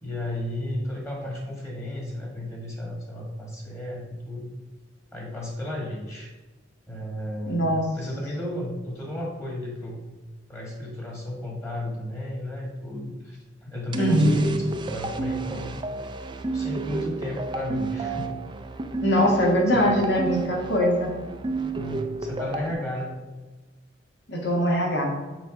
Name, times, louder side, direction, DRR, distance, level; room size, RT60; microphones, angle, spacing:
voice 1, 0.0-4.5 5.1-6.3 6.9-10.1 10.5-15.7 16.5-18.4 19.7-19.9 21.7-23.2, left 1 dB, 15° left, -1 dB, 1.8 m, -33 dB
voice 2, 7.5-7.9 14.0-14.4 19.0-21.1 24.3-25.1, equal, 65° left, -2 dB, 2.0 m, -22 dB
sound 1, 13.9-22.7, right 3 dB, 25° right, 0.5 m, -31 dB
7.0 x 4.5 x 5.2 m, 1.2 s
head